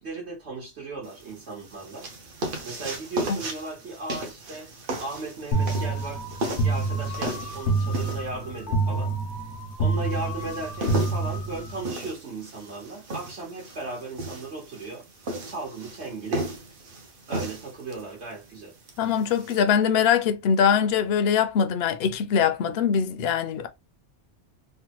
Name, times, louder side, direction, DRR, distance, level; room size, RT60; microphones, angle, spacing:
voice 1, 0.0-2.1 2.6-4.7 5.0-9.1 9.8-15.0 15.5-16.5 17.3-18.7, right 3 dB, 75° right, 1.5 m, -36 dB
sound 1, 1.0-19.6, right 1 dB, 55° right, 0.8 m, -36 dB
sound 2, 5.5-11.9, right 3 dB, 85° left, 1.2 m, -27 dB
voice 2, 19.0-23.7, left 7 dB, 70° left, 0.8 m, -22 dB
3.4 x 2.1 x 2.8 m
omnidirectional pair, 1.1 m